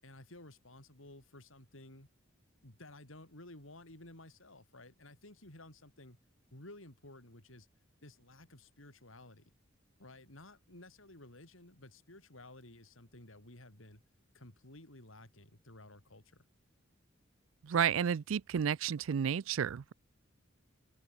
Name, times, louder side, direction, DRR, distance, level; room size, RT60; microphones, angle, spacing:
voice 1, 0.0-2.1 2.6-6.2 6.5-7.7 8.0-9.5 10.0-14.0 14.3-16.4, left 1 dB, 85° left, 6.2 m, -54 dB
voice 2, 17.6-19.9, right 8 dB, 85° right, 0.4 m, -31 dB
open air
head